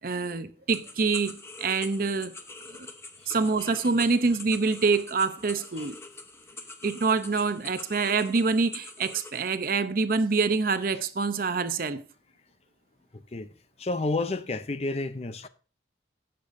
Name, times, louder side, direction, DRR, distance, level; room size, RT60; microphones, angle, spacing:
voice 1, 0.0-2.3 2.8-2.9 3.3-6.0 6.8-12.0, right 4 dB, 50° right, 0.6 m, -26 dB
sound 1, 0.7-9.4, left 3 dB, 15° left, 0.9 m, -44 dB
voice 2, 13.1-13.5 13.8-15.5, left 2 dB, 35° left, 0.5 m, -31 dB
16.0 x 6.7 x 2.6 m
head